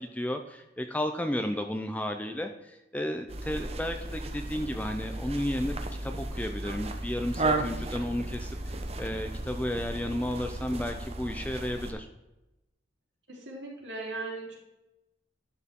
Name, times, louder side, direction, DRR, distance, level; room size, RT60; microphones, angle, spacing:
voice 1, 0.0-12.1, left 1 dB, 10° left, 6 dB, 0.5 m, -33 dB
sound 1, 3.3-11.9, right 2 dB, 35° right, 0.9 m, -34 dB
voice 2, 13.3-14.5, right 3 dB, 90° right, -4 dB, 3.5 m, -38 dB
11.0 x 6.5 x 3.7 m, 0.96 s
head